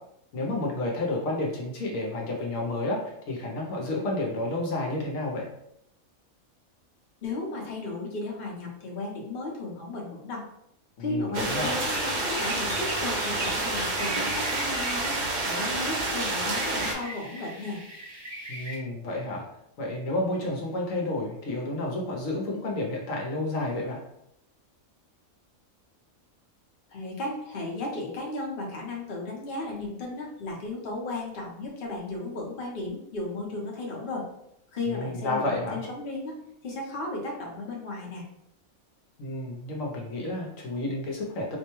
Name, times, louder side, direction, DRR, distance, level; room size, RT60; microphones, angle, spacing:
voice 1, 0.3-3.0 3.3-5.5 11.0-11.8 18.5-19.4 19.8-24.0 34.9-35.8 39.2-41.6, left 2 dB, 70° left, -1 dB, 1.1 m, -30 dB
voice 2, 7.2-10.4 11.0-15.2 15.5-17.8 26.9-34.3 34.7-36.4 36.6-38.2, left 2 dB, 45° left, -2 dB, 0.9 m, -35 dB
sound 1, 11.3-16.9, right 2 dB, 50° right, 0.5 m, -29 dB
sound 2, 11.5-18.7, right 1 dB, 70° right, 2.1 m, -40 dB
4.3 x 2.2 x 2.9 m, 0.78 s
omnidirectional pair, 1.5 m